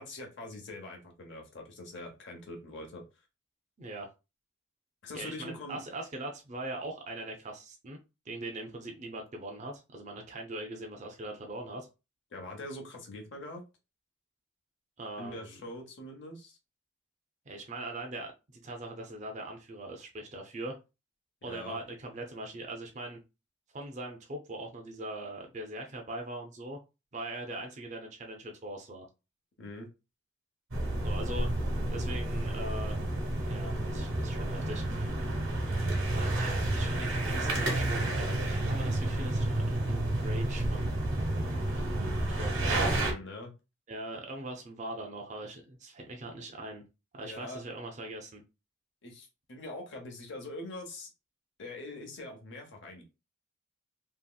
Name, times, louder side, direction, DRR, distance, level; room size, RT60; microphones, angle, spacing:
voice 1, 0.0-3.0 5.0-5.8 12.3-13.6 15.2-16.6 21.5-21.8 29.6-29.9 42.7-43.5 47.2-47.6 49.0-51.1 51.6-53.0, left 1 dB, 60° left, 1 dB, 0.8 m, -43 dB
voice 2, 3.8-4.1 5.1-8.0 8.3-11.9 15.0-15.6 17.5-20.8 21.4-23.2 23.7-26.8 27.1-29.1 31.0-33.0 33.4-35.2 36.1-41.1 42.4-43.2 43.9-46.8 47.1-48.4, right 1 dB, 35° right, 2 dB, 0.5 m, -41 dB
sound 1, 30.7-43.1, right 1 dB, 80° right, 1.1 m, -30 dB
2.9 x 2.8 x 2.3 m, 0.28 s
head